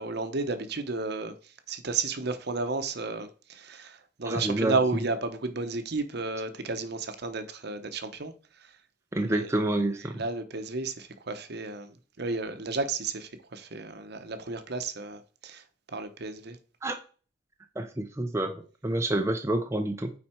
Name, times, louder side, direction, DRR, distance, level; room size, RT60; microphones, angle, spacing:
voice 1, 0.0-8.3 8.6-8.7 9.3-9.5 10.1-15.6 15.9-16.6, right 3 dB, 55° right, 0.9 m, -32 dB
voice 2, 4.2-4.8 9.1-10.2 16.8-17.0 17.8-20.1, right 1 dB, 15° right, 0.5 m, -28 dB
9.0 x 4.2 x 4.4 m
head